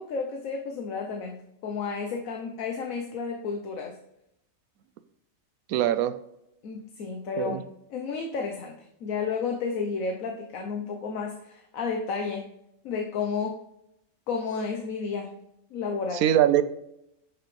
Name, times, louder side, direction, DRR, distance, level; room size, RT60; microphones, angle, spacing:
voice 1, 0.0-4.0 6.6-12.5 12.8-13.6 14.3-15.3 15.7-16.3, left 5 dB, 75° left, 3 dB, 1.3 m, -32 dB
voice 2, 5.7-6.2 7.4-7.6 16.2-16.6, right 11 dB, 85° right, 13 dB, 1.1 m, -22 dB
9.1 x 6.3 x 3.2 m, 0.82 s
omnidirectional pair, 1.5 m